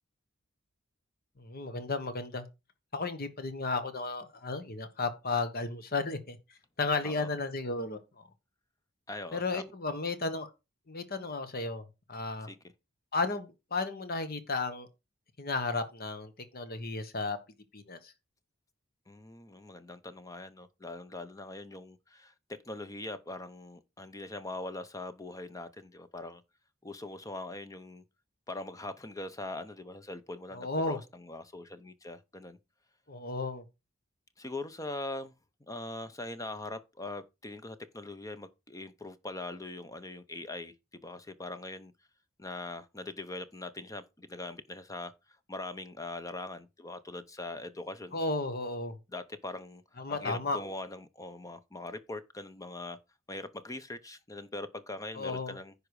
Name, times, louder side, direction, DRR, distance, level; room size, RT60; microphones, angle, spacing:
voice 1, 1.4-2.5 2.9-6.4 6.8-8.2 9.3-10.5 10.9-12.5 13.1-14.9 15.4-17.4 17.7-18.1 30.5-31.0 33.1-33.6 48.1-49.0 50.0-50.6 55.1-55.6, left 3 dB, 45° left, 1.3 m, -34 dB
voice 2, 9.1-9.6 12.5-12.6 19.1-26.4 26.8-28.0 28.5-32.6 34.4-35.3 35.7-41.9 42.4-45.1 45.5-48.2 49.1-49.8 50.1-53.0 53.3-55.7, left 2 dB, 15° left, 0.7 m, -42 dB
10.0 x 4.9 x 4.8 m
head